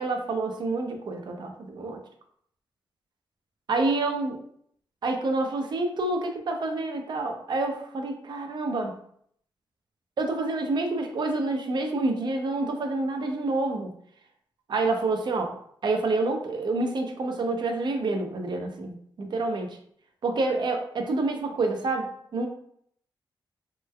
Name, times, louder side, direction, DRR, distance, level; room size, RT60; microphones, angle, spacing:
voice 1, 0.0-2.0 3.7-4.4 5.0-9.0 10.2-13.9 14.7-15.6 15.8-19.8 20.2-22.5, right 2 dB, 60° right, 4 dB, 0.5 m, -28 dB
3.1 x 3.0 x 2.2 m, 0.67 s
wide cardioid pair, 105°, 9 cm